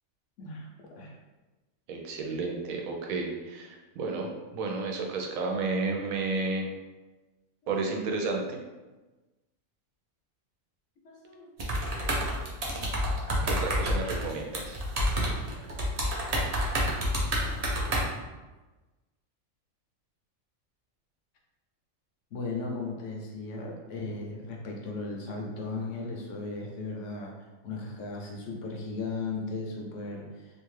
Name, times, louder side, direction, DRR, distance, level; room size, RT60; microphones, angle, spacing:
voice 1, 0.4-0.7 0.9-1.1 11.0-11.5 22.3-27.3 27.6-30.3, left 3 dB, 70° left, -1 dB, 0.9 m, -36 dB
voice 2, 1.9-6.7 7.7-8.6 13.4-14.8, right 3 dB, 90° right, 1 dB, 1.0 m, -32 dB
sound 1, 11.6-18.0, equal, 55° right, 0.4 m, -28 dB
2.7 x 2.4 x 3.1 m, 1.2 s
omnidirectional pair, 1.4 m